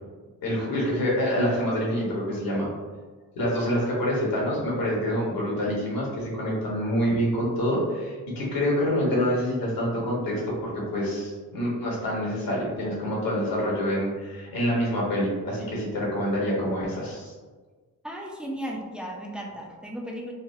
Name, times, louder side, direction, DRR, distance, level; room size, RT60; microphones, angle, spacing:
voice 1, 0.4-2.7 3.3-17.3, equal, 75° left, -4 dB, 1.3 m, -26 dB
voice 2, 18.0-20.3, equal, 5° right, -1 dB, 0.5 m, -35 dB
4.0 x 2.1 x 2.6 m, 1.4 s
cardioid pair, 80°, 35 cm